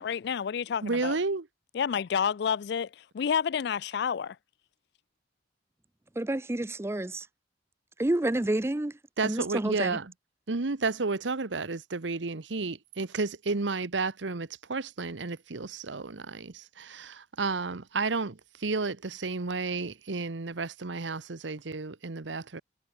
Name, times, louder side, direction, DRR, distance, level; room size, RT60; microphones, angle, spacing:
voice 1, 0.0-1.2 1.7-4.4, left 7 dB, 60° left, 0.4 m, -29 dB
voice 2, 0.8-1.5 9.2-10.1 10.5-22.6, right 3 dB, 80° right, 1.0 m, -32 dB
voice 3, 6.2-7.3 8.0-8.9 9.2-10.0, right 1 dB, 15° right, 0.5 m, -29 dB
head